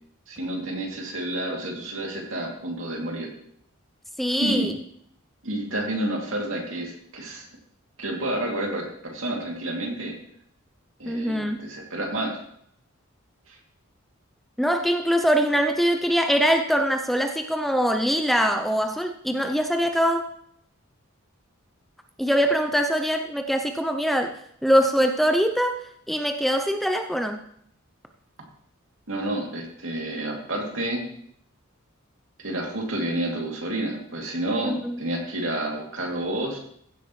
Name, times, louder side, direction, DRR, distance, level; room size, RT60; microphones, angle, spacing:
voice 1, 0.3-3.3 4.4-4.7 5.4-7.5 8.0-10.1 11.0-12.4 13.5-13.6 29.1-31.0 32.4-36.6, right 1 dB, 65° right, -1 dB, 2.7 m, -29 dB
voice 2, 4.2-4.8 11.1-11.7 14.6-20.3 22.2-24.3 24.6-25.7 26.1-27.4 34.6-35.0, equal, ahead, 6 dB, 0.5 m, -23 dB
15.5 x 8.3 x 3.2 m, 0.69 s
head